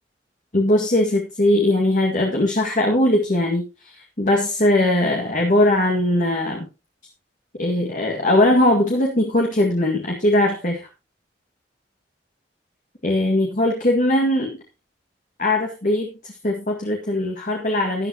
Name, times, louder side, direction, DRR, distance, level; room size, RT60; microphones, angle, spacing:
voice 1, 0.5-6.7 7.6-10.8 13.0-14.6 15.4-18.1, left 1 dB, 45° left, 1 dB, 1.9 m, -20 dB
13.0 x 11.0 x 2.9 m, 0.28 s
head